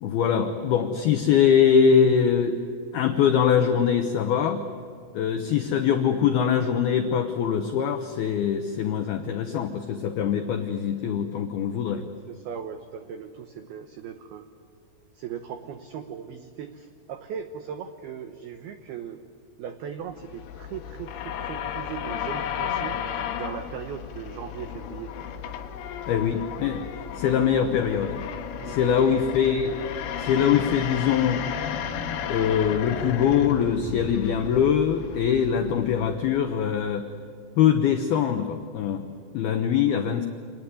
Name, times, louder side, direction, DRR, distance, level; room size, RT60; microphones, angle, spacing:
voice 1, 0.0-2.7 2.9-4.6 5.1-12.1 26.0-26.9 27.2-28.2 28.7-29.8 30.2-31.4 32.3-37.1 37.6-39.1 39.3-40.3, left 8 dB, 80° left, 7 dB, 2.2 m, -23 dB
voice 2, 12.3-14.5 15.1-19.2 19.6-23.0 23.3-25.2 28.6-29.4, right 8 dB, 85° right, 8 dB, 2.2 m, -38 dB
sound 1, 20.1-36.4, left 8 dB, 65° left, 2.9 m, -34 dB
27.0 x 19.0 x 9.7 m, 2.5 s
omnidirectional pair, 6.0 m